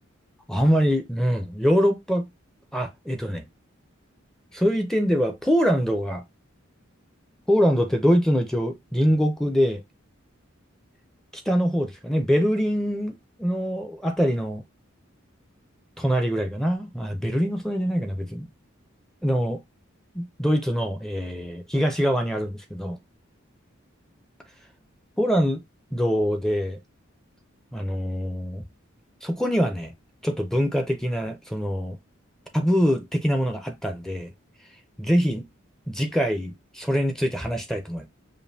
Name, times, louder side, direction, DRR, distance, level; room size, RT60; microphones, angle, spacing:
voice 1, 0.5-2.3 2.7-3.4 4.5-6.2 7.5-9.8 11.3-14.6 16.0-18.5 19.2-19.6 20.1-23.0 25.2-25.6 25.9-26.8 27.7-28.6 29.2-29.9 30.2-32.0 32.5-34.3 35.0-35.4 35.9-38.1, equal, 5° left, 0.5 m, -24 dB
5.1 x 2.5 x 2.6 m
head